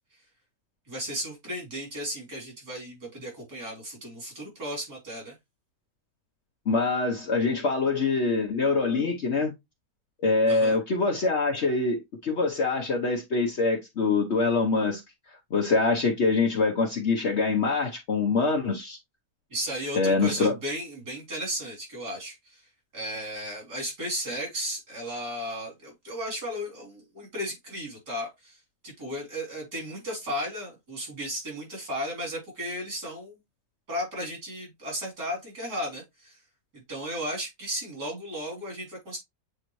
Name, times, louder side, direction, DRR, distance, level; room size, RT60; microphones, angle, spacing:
voice 1, 0.9-5.3 10.5-10.8 19.5-22.7 22.9-28.6 28.8-33.4 33.9-36.4 36.7-39.2, equal, 75° right, 3.8 m, -35 dB
voice 2, 6.7-9.5 10.2-15.0 15.5-19.0 20.0-20.5, left 3 dB, 50° left, 1.1 m, -24 dB
8.0 x 3.9 x 3.0 m
omnidirectional pair, 1.6 m